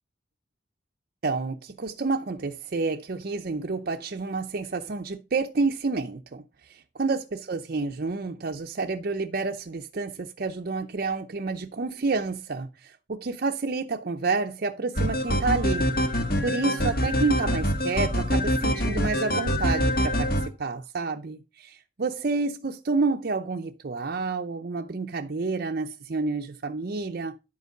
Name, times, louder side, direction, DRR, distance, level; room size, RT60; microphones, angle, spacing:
voice 1, 1.2-20.3 20.6-27.4, right 3 dB, 55° right, 0.6 m, -29 dB
sound 1, 15.0-20.5, equal, 50° left, 1.5 m, -25 dB
10.5 x 4.5 x 5.4 m
head